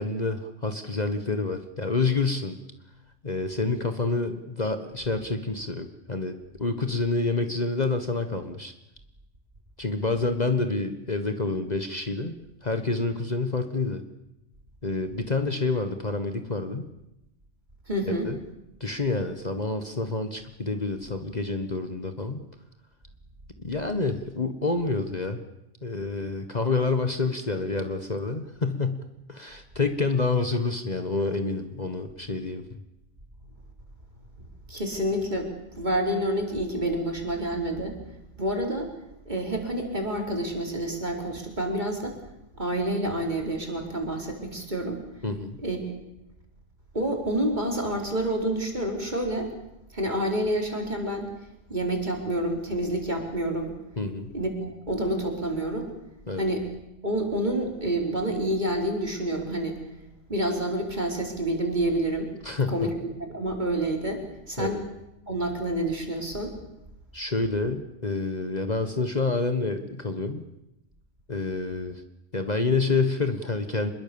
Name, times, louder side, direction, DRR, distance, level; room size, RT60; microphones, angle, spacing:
voice 1, 0.0-2.6 3.2-8.7 9.8-12.3 12.6-14.0 14.8-16.9 18.1-18.4 18.8-22.4 23.6-25.4 25.8-32.8 45.2-45.6 54.0-54.3 56.3-56.5 62.4-62.9 64.6-64.8 67.1-70.4 71.3-72.0 72.3-73.9, left 3 dB, 35° left, 7 dB, 1.6 m, -28 dB
voice 2, 17.9-18.3 34.4-35.5 35.8-37.9 38.4-38.9 39.3-42.2 42.6-45.0 45.6-45.8 46.9-49.5 49.9-51.3 51.7-53.7 54.3-55.9 56.4-56.6 57.0-59.8 60.3-62.3 62.7-62.9 63.3-64.8 65.3-66.5, right 1 dB, 40° right, 2 dB, 4.7 m, -28 dB
25.5 x 22.0 x 7.1 m, 0.89 s
omnidirectional pair, 1.2 m